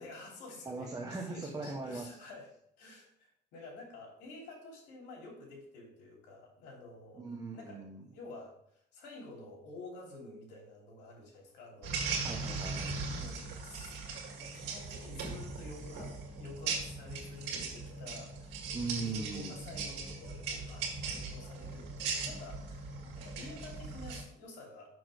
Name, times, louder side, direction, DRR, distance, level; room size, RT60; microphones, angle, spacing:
voice 1, 0.0-0.9 1.3-2.5 2.8-12.1 13.1-13.9 14.3-18.6 18.9-24.9, left 2 dB, 85° left, -1 dB, 3.0 m, -50 dB
voice 2, 0.6-2.1 7.2-8.1 12.2-13.0 18.7-19.5 23.0-23.1, right 3 dB, 20° right, 0 dB, 1.1 m, -39 dB
sound 1, 11.8-24.2, right 4 dB, 85° right, 1.9 m, -39 dB
6.3 x 6.1 x 4.9 m, 0.73 s
cardioid pair, 110°, 17 cm